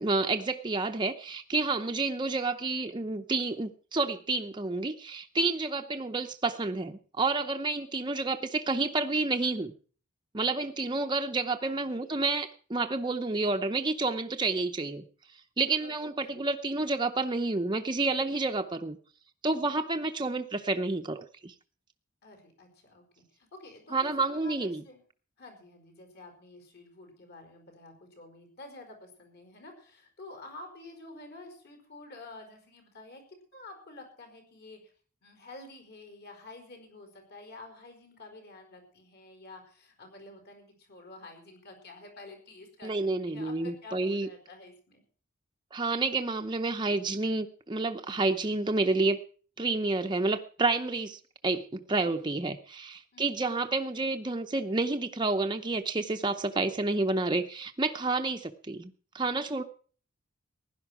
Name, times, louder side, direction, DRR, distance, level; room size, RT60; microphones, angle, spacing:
voice 1, 0.0-9.7 10.3-15.0 15.6-19.0 19.4-21.5 23.9-24.8 42.8-44.3 45.7-49.2 49.6-59.6, right 3 dB, 20° right, 5 dB, 0.7 m, -29 dB
voice 2, 11.6-12.1 15.8-16.4 19.5-19.8 22.2-25.0 25.4-33.2 33.5-34.8 35.2-45.0 51.9-52.5 53.1-53.5 59.5-59.7, left 2 dB, 50° left, 5 dB, 5.0 m, -49 dB
16.0 x 11.0 x 6.0 m, 0.43 s
head